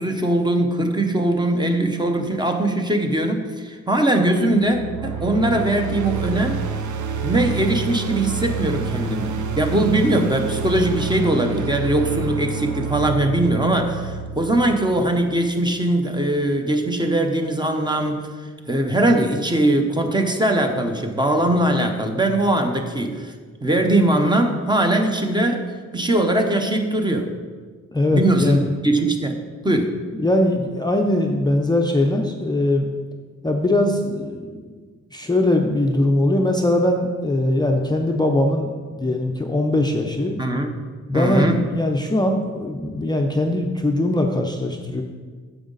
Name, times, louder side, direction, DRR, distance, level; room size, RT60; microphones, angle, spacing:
voice 1, 0.0-6.6 7.2-18.3 18.6-23.3 23.6-25.6 25.9-27.3 28.1-28.6 28.8-29.4 29.6-30.0 40.4-40.7 41.1-41.6, right 1 dB, 15° right, 5 dB, 0.8 m, -21 dB
sound 1, 4.5-15.6, right 5 dB, 85° right, 0.7 m, -28 dB
voice 2, 27.9-28.7 30.1-32.9 33.4-34.8 35.1-38.7 39.0-40.4 41.1-45.0, left 1 dB, 15° left, 1 dB, 0.5 m, -21 dB
9.1 x 7.2 x 3.9 m, 1.5 s
wide cardioid pair, 130°, 29 cm